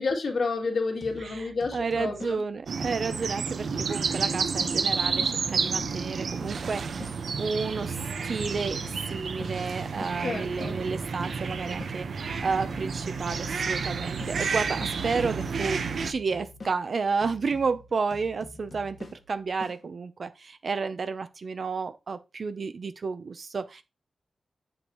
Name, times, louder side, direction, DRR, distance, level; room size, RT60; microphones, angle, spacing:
voice 1, 0.0-2.4 10.2-10.8, left 3 dB, 60° left, 2.7 m, -30 dB
sound 1, 1.0-5.4 5.8-10.2 10.6-15.0 15.4-19.8, left 3 dB, 40° left, 1.6 m, -47 dB
voice 2, 1.7-6.8 7.4-8.0 8.2-8.8 9.1-23.8, right 4 dB, 55° right, 0.7 m, -31 dB
sound 2, 2.7-16.1, right 5 dB, 75° right, 1.1 m, -30 dB
8.1 x 7.6 x 3.1 m
wide cardioid pair, 135°, 0 cm